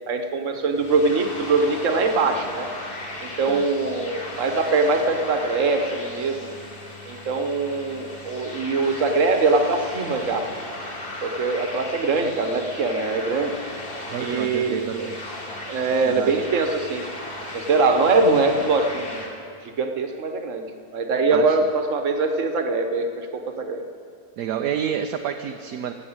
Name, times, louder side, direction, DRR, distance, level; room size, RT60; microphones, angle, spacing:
voice 1, 0.1-2.7 3.2-6.6 7.1-10.5 11.2-13.5 14.2-15.1 15.7-17.0 17.5-19.2 19.6-20.7 20.9-23.8, right 3 dB, 55° right, 6 dB, 1.4 m, -22 dB
sound 1, 0.7-19.3, left 1 dB, 35° left, 2.1 m, -36 dB
voice 2, 14.1-15.2 16.0-16.4 21.3-21.6 24.4-25.9, right 9 dB, 70° right, 6 dB, 1.0 m, -29 dB
16.0 x 7.6 x 8.8 m, 2.3 s
omnidirectional pair, 1.8 m